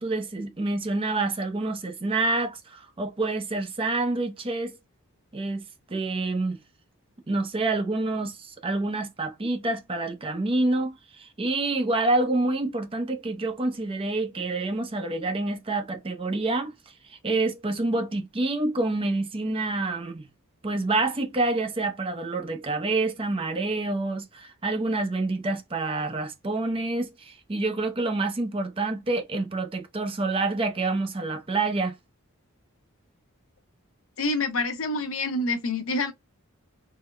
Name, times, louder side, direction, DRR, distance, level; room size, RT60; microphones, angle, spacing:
voice 1, 0.0-4.8 5.3-5.6 5.9-6.6 7.3-16.7 17.1-20.3 20.6-32.0, right 2 dB, 25° right, 0.5 m, -27 dB
voice 2, 34.2-36.1, left 2 dB, 65° left, 0.8 m, -27 dB
3.6 x 2.1 x 3.2 m
head